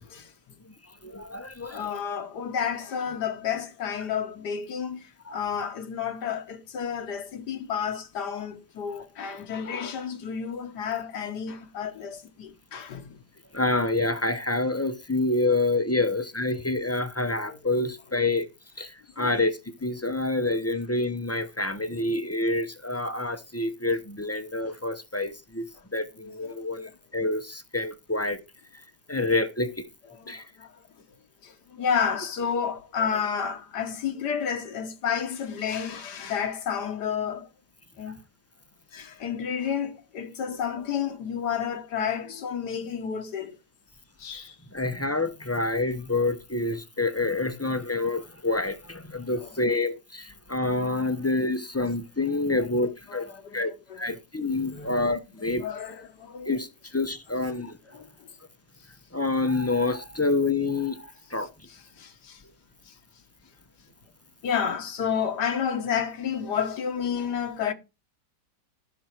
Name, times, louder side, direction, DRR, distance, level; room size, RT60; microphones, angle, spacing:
voice 1, 0.0-0.6 1.7-13.2 17.5-17.7 19.2-19.3 21.9-22.0 26.4-26.6 29.1-29.2 30.1-30.8 31.4-37.5 38.0-38.1 38.9-43.6 44.2-44.6 49.4-49.5 53.1-53.6 53.9-54.1 54.7-55.0 55.6-56.5 57.9-58.3 61.7-62.4 62.9-63.0 64.4-67.7, left 7 dB, 75° left, 1.8 m, -31 dB
voice 2, 0.8-2.0 5.2-5.4 13.5-18.5 18.8-28.4 28.7-28.8 29.1-29.9 30.3-30.4 44.3-53.7 54.0-55.6 56.5-57.8 59.1-61.5, left 2 dB, 15° left, 0.6 m, -27 dB
14.0 x 6.1 x 4.5 m
omnidirectional pair, 1.8 m